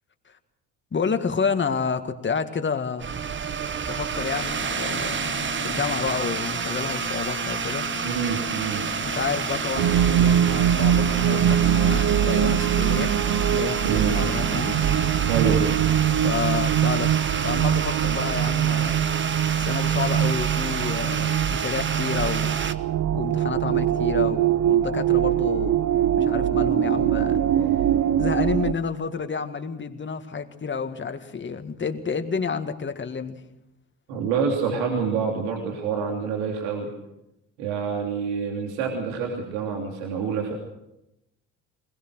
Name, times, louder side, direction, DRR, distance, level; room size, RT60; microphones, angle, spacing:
voice 1, 0.9-3.1 3.9-5.2 5.6-7.9 9.0-13.1 13.5-14.8 16.2-17.1 17.4-19.0 19.6-22.5 23.1-25.8 26.2-27.4 28.2-33.4, left 5 dB, 30° left, 7 dB, 2.0 m, -29 dB
sound 1, 3.0-22.7, right 6 dB, 30° right, 1.1 m, -29 dB
sound 2, 4.1-16.8, left 9 dB, 65° left, 1.9 m, -39 dB
voice 2, 8.0-8.8 13.8-14.2 15.3-15.7 34.1-36.9 37.6-40.5, right 6 dB, 75° right, 1 dB, 3.2 m, -27 dB
sound 3, 9.8-28.7, right 10 dB, 45° right, 1.0 m, -22 dB
21.0 x 19.5 x 6.4 m, 0.88 s
hypercardioid pair, 60°, 40 cm